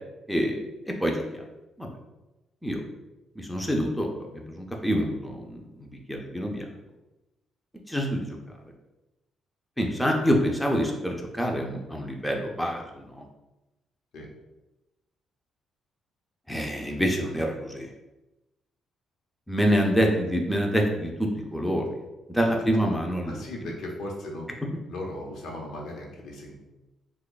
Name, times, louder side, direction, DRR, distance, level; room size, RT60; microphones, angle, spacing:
voice 1, 0.3-0.6 1.0-1.2 1.8-1.9 2.6-2.8 3.4-5.6 6.1-6.6 7.9-8.4 9.8-12.8 13.2-13.3 16.5-17.9 19.5-21.9 22.3-23.4, equal, 5° left, 0 dB, 0.5 m, -26 dB
voice 2, 23.3-24.5 24.8-26.6, left 1 dB, 75° left, -1 dB, 0.8 m, -37 dB
2.9 x 2.3 x 3.9 m, 1.0 s
cardioid pair, 90°, 0 cm